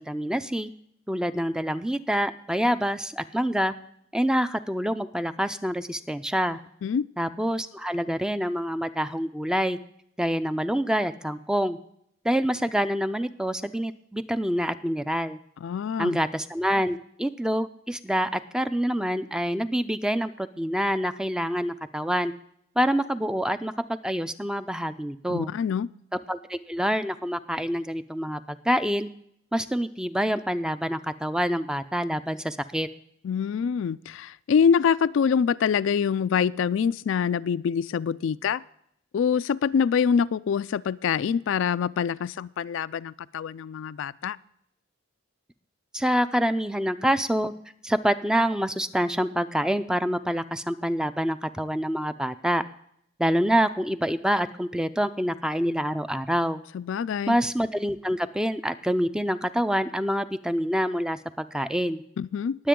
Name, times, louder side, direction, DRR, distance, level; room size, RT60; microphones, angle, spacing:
voice 1, 0.1-0.7 1.1-3.7 4.1-6.6 7.2-9.8 10.2-11.8 12.2-15.4 16.0-22.3 22.8-25.5 26.3-29.1 29.5-32.9 45.9-47.5 47.8-52.6 53.2-56.6 57.3-62.0 62.6-62.7, equal, 5° right, 12 dB, 0.4 m, -26 dB
voice 2, 15.6-16.2 25.3-25.9 33.2-38.6 39.1-44.4 56.7-57.4 62.2-62.6, left 7 dB, 70° left, 16 dB, 0.3 m, -25 dB
20.0 x 7.7 x 3.7 m, 0.70 s
head